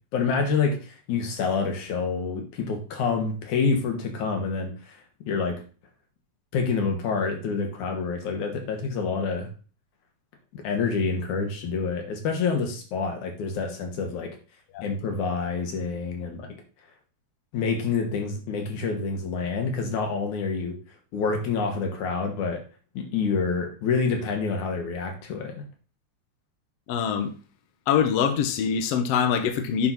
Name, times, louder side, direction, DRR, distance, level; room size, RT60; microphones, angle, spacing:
voice 1, 0.1-4.9 5.2-5.6 6.5-9.5 10.5-14.3 14.8-16.5 17.5-20.7 21.1-22.6 22.9-25.6, left 5 dB, 85° left, 3.1 m, -27 dB
voice 2, 26.9-27.3 27.9-29.9, left 7 dB, 65° left, 1.9 m, -24 dB
7.9 x 4.0 x 5.9 m
omnidirectional pair, 3.3 m